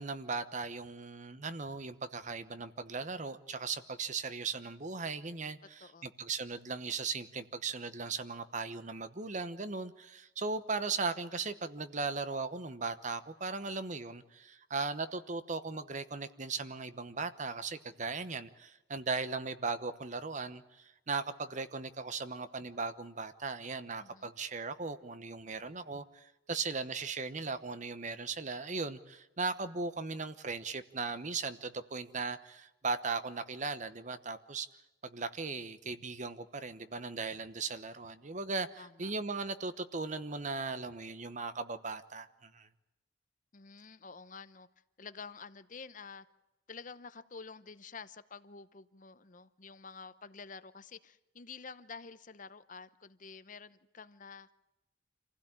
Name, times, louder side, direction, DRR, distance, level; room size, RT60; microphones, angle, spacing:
voice 1, 0.0-34.7 35.0-42.7, right 4 dB, 40° right, 12 dB, 1.0 m, -38 dB
voice 2, 24.0-24.3 38.8-39.1 43.5-44.7 45.0-46.3 46.7-54.5, left 5 dB, 45° left, 13 dB, 0.9 m, -49 dB
27.0 x 16.0 x 8.9 m, 1.0 s
head